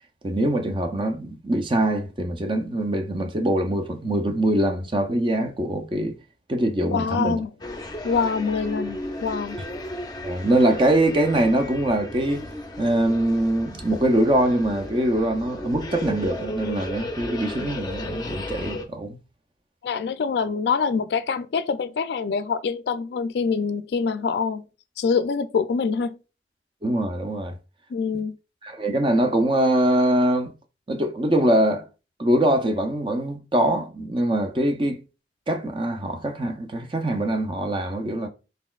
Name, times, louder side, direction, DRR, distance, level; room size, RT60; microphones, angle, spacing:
voice 1, 0.2-6.1 6.5-7.4 10.2-12.5 12.8-19.2 26.8-27.5 28.6-30.5 30.9-31.9 32.2-35.0 35.5-38.3, right 1 dB, 30° right, 0.5 m, -23 dB
voice 2, 6.9-7.5 8.0-9.6 19.8-24.7 25.0-26.2 27.9-28.4, left 5 dB, 70° left, 0.3 m, -25 dB
sound 1, 7.6-18.8, left 1 dB, 20° left, 0.5 m, -35 dB
4.1 x 3.8 x 2.3 m
head